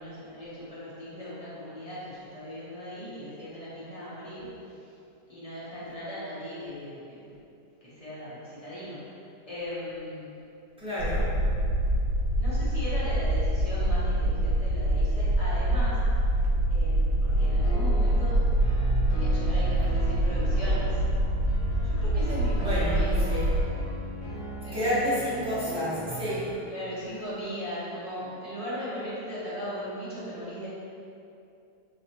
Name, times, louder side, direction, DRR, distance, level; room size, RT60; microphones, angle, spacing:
voice 1, 0.0-4.9 5.3-7.2 7.8-9.1 9.5-10.4 12.4-16.0 16.7-18.4 19.1-21.0 21.8-23.3 24.6-25.0 26.7-30.7, left 1 dB, 30° left, -10 dB, 0.6 m, -38 dB
voice 2, 10.8-11.3 22.5-23.0 23.3-23.5 24.7-26.5, left 1 dB, 10° right, -12 dB, 0.3 m, -29 dB
sound 1, 11.0-23.6, right 1 dB, 80° right, 1.2 m, -25 dB
sound 2, 17.3-26.5, right 1 dB, 55° left, 1.2 m, -38 dB
4.9 x 2.8 x 2.8 m, 2.6 s
omnidirectional pair, 1.9 m